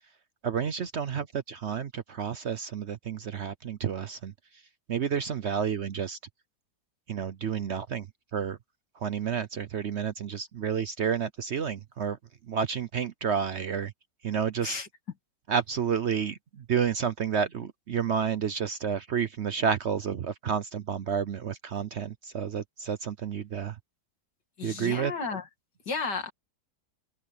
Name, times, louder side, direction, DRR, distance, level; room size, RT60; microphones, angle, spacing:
voice 1, 0.4-4.6 4.9-6.2 7.1-8.1 8.3-8.6 8.9-12.2 12.5-13.9 14.2-14.8 15.5-23.8 24.6-25.1, right 7 dB, 55° right, 0.8 m, -30 dB
voice 2, 24.6-25.4 25.9-26.3, left 5 dB, 85° left, 2.9 m, -33 dB
open air
omnidirectional pair, 1.8 m